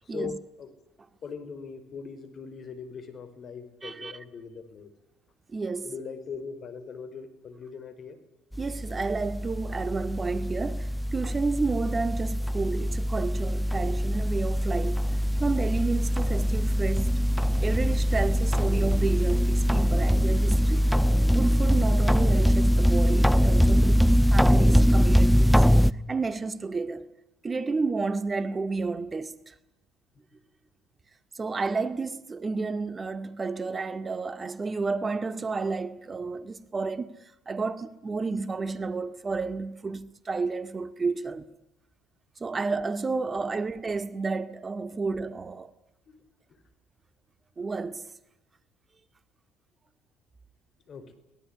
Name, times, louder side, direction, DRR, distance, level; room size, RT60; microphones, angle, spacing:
voice 1, 0.0-0.7 1.2-4.9 5.8-8.2 44.9-45.0 46.1-46.3 50.9-51.1, left 5 dB, 45° left, 5.1 m, -40 dB
voice 2, 3.8-4.1 5.5-5.9 8.6-15.0 15.4-17.3 17.6-21.0 21.3-25.6 26.1-27.1 27.4-29.5 31.4-37.2 37.5-41.5 42.4-45.7 47.6-48.0, right 4 dB, 30° right, 2.1 m, -31 dB
sound 1, 8.5-25.9, equal, ahead, 1.0 m, -23 dB
24.5 x 19.0 x 10.0 m
hypercardioid pair, 70°, 0 cm